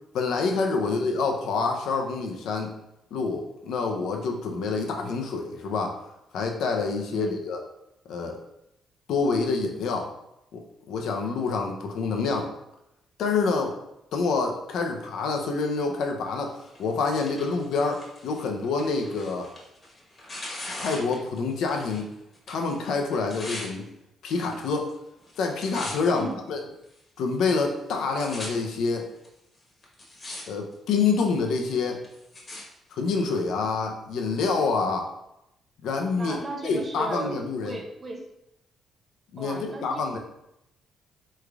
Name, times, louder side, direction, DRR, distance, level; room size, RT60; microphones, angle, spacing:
voice 1, 0.1-2.7 3.1-6.0 6.3-7.6 8.1-8.4 9.1-10.1 10.5-12.5 13.2-13.8 14.1-19.5 20.8-22.1 22.5-23.9 24.2-24.9 25.4-26.6 27.2-29.1 30.5-32.0 32.9-35.1 35.8-36.4 36.6-37.8 39.3-40.2, left 4 dB, 75° left, 2 dB, 0.5 m, -27 dB
Tearing, 16.6-22.1 22.3-23.7 24.4-24.9 25.2-26.2 26.8-26.9 27.6-27.7 27.9-28.5 29.2-29.3 29.8-30.4 30.7-31.2 31.7-32.6 33.4-33.5, left 1 dB, 35° left, 1.1 m, -40 dB
voice 2, 26.1-26.4 36.2-38.2 39.4-40.2, right 2 dB, 30° right, 2 dB, 0.6 m, -36 dB
3.6 x 3.2 x 2.3 m, 0.83 s
cardioid pair, 90°, 0 cm